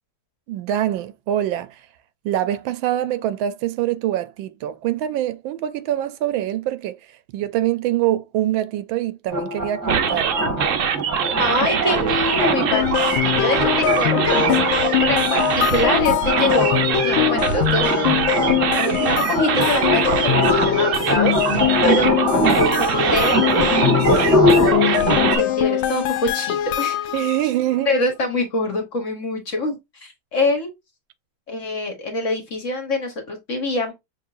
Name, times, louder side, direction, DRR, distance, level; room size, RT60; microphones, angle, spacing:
voice 1, 0.5-1.8 2.2-10.6 27.1-27.9, right 12 dB, 80° right, 1.3 m, -24 dB
sound 1, 9.3-25.4, left 1 dB, 10° right, 1.1 m, -23 dB
sound 2, 9.9-25.4, right 7 dB, 60° right, 0.8 m, -23 dB
voice 2, 11.4-18.4 18.7-27.1 27.9-30.7 31.5-33.9, left 2 dB, 45° left, 1.2 m, -25 dB
sound 3, 12.7-27.4, left 13 dB, 90° left, 1.4 m, -23 dB
6.0 x 3.5 x 2.5 m
omnidirectional pair, 2.1 m